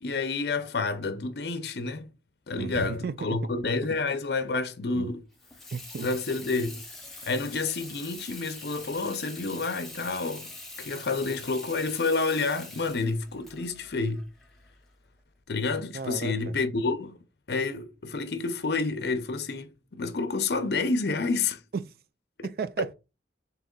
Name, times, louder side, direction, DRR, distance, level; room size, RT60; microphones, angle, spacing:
voice 1, 0.0-2.1 2.5-5.2 6.0-6.8 7.2-10.5 10.8-14.2 15.5-17.2 17.5-21.6 22.4-22.5 22.8-22.9, left 3 dB, 65° left, 0.6 m, -29 dB
voice 2, 2.5-3.4 4.9-5.1 5.7-6.1 15.9-16.5 21.7-21.9 22.4-22.9, right 5 dB, 55° right, 0.3 m, -34 dB
Water tap faucet / Sink (filling or washing), 5.3-14.9, left 2 dB, ahead, 0.7 m, -44 dB
4.0 x 2.9 x 3.7 m
head